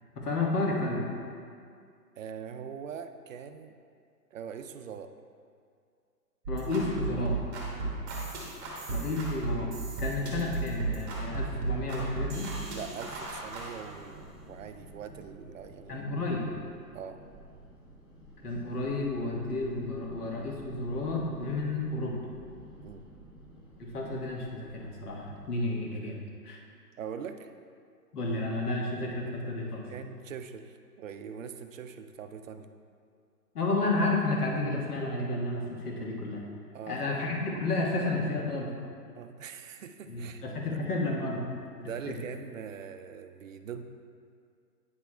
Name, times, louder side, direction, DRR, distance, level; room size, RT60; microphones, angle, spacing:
voice 1, 0.2-1.0 6.5-7.4 8.9-9.7 10.0-12.5 15.9-16.5 18.4-22.2 23.8-26.2 26.4-26.6 28.1-29.8 33.5-36.4 36.9-38.7 40.1-41.4 42.1-42.2, left 2 dB, 65° left, -2 dB, 1.6 m, -31 dB
voice 2, 2.2-3.7 4.3-5.1 7.8-8.1 12.7-16.1 16.9-17.2 22.8-23.1 27.0-27.5 29.9-32.7 36.7-37.2 39.1-40.8 41.8-43.8, right 7 dB, 55° right, 8 dB, 0.5 m, -42 dB
sound 1, 6.5-25.7, right 1 dB, 30° left, 1.5 m, -51 dB
sound 2, 6.5-13.7, right 3 dB, 15° right, 1.0 m, -34 dB
9.3 x 5.9 x 2.3 m, 2.3 s
hypercardioid pair, 150°, 48 cm